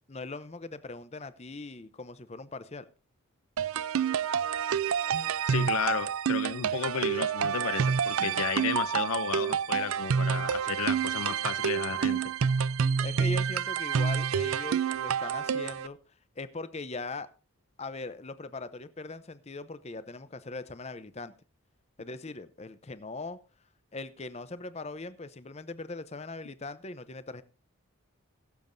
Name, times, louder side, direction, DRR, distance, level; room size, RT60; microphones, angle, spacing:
voice 1, 0.1-2.9 13.0-16.0 16.4-17.3 17.8-21.3 22.0-23.4 23.9-27.4, left 3 dB, 30° left, 14 dB, 0.6 m, -40 dB
sound 1, 3.6-15.9, right 7 dB, 75° right, 0.4 m, -28 dB
voice 2, 5.5-12.2, left 7 dB, 75° left, 14 dB, 0.6 m, -33 dB
21.5 x 7.3 x 2.6 m, 0.36 s
head